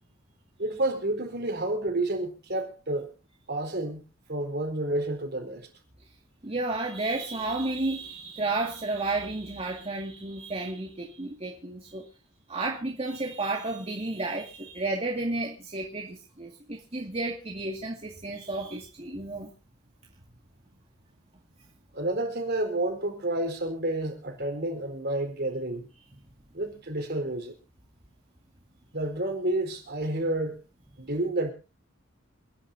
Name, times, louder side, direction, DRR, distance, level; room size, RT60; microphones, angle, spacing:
voice 1, 0.6-3.1 3.5-4.0 4.3-5.6 21.9-25.9 26.5-27.5 28.9-30.6 31.0-31.5, right 1 dB, 55° right, 4.2 m, -30 dB
voice 2, 6.4-12.1 12.5-19.5, right 2 dB, 30° right, 2.1 m, -32 dB
28.5 x 10.5 x 2.7 m
head